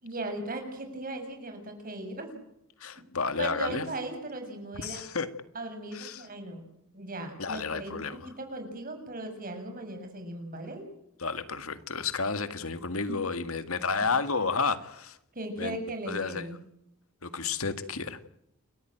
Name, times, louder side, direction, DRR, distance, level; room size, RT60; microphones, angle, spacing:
voice 1, 0.0-2.3 3.4-5.0 5.6-6.6 6.9-10.9 13.1-13.2 15.4-16.6, right 2 dB, 40° right, 7.0 m, -37 dB
voice 2, 2.8-3.9 4.7-5.3 5.9-6.3 7.4-8.3 11.2-15.2 15.6-15.8 16.1-16.5 17.2-18.3, left 4 dB, 85° left, 2.0 m, -31 dB
29.5 x 14.0 x 9.1 m
head